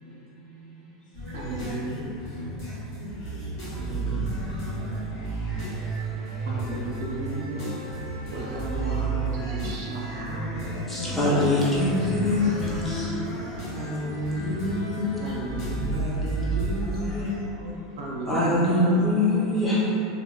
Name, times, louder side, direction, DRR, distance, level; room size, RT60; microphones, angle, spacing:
voice 1, 0.0-1.3 3.5-4.1 4.7-6.8 7.5-8.3 14.0-14.9 16.8-18.4 18.7-19.6, left 1 dB, 35° left, -11 dB, 0.9 m, -46 dB
sound 1, 1.1-17.3, right 2 dB, 75° left, 1.2 m, -32 dB
voice 2, 1.3-2.1 3.7-4.3 6.4-7.7 8.3-11.2 12.3-13.4 15.2-16.1 18.0-19.0, right 2 dB, 70° right, -4 dB, 0.6 m, -34 dB
voice 3, 10.9-13.2 13.7-15.2 15.9-17.3 18.3-19.8, left 1 dB, 5° left, -8 dB, 0.5 m, -25 dB
2.5 x 2.1 x 2.8 m, 2.8 s
supercardioid pair, 170°, 2 cm